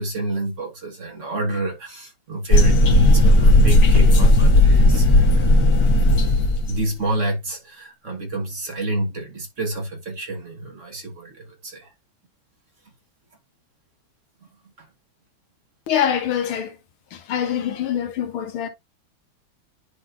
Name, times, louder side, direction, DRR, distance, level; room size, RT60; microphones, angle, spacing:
voice 1, 0.0-5.5 6.7-11.9 14.8-14.9, right 2 dB, 40° right, 1.7 m, -29 dB
sound 1, 2.5-6.8, left 1 dB, 50° left, 1.8 m, -14 dB
voice 2, 15.9-16.8 17.1-18.7, left 9 dB, 85° left, 2.0 m, -24 dB
10.5 x 3.8 x 2.6 m
omnidirectional pair, 2.2 m